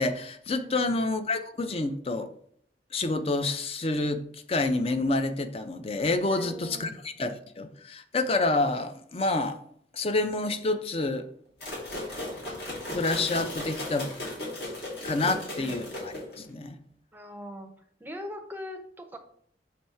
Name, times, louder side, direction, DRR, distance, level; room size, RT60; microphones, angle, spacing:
voice 1, 0.0-2.3 2.9-9.6 9.9-11.3 12.9-14.1 15.0-16.8, left 2 dB, 35° left, 9 dB, 0.5 m, -28 dB
voice 2, 0.6-1.0 6.2-7.0 15.2-15.8 17.1-17.7 18.0-19.2, equal, 10° right, 5 dB, 0.6 m, -41 dB
sound 1, 11.6-16.5, left 1 dB, 60° left, 2.5 m, -36 dB
5.9 x 3.1 x 5.5 m, 0.63 s
head